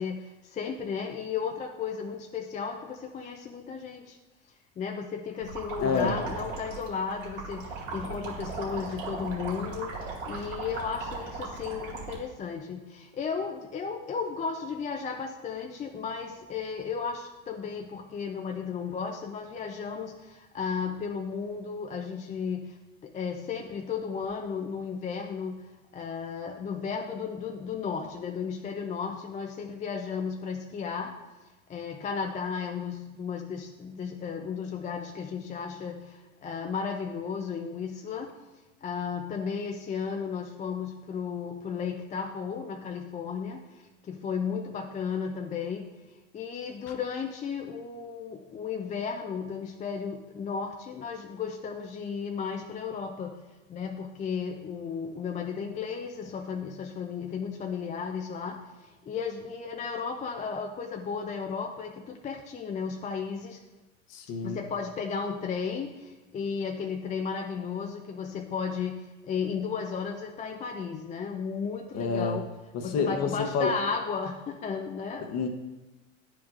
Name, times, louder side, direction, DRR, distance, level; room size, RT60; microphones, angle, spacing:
voice 1, 0.0-4.2 4.8-9.9 10.3-22.8 23.0-25.6 25.9-31.1 31.7-38.3 38.8-45.9 46.3-53.4 53.7-63.6 64.4-72.5 72.8-75.3, left 6 dB, 20° left, 2 dB, 0.5 m, -34 dB
sound 1, 5.4-12.2, right 4 dB, 80° right, 2.2 m, -38 dB
voice 2, 5.8-6.1 64.1-64.6 71.9-72.4 72.7-73.7 75.2-75.5, left 5 dB, 40° left, 6 dB, 1.0 m, -28 dB
10.0 x 4.8 x 2.5 m, 1.1 s
hypercardioid pair, 90°, 39 cm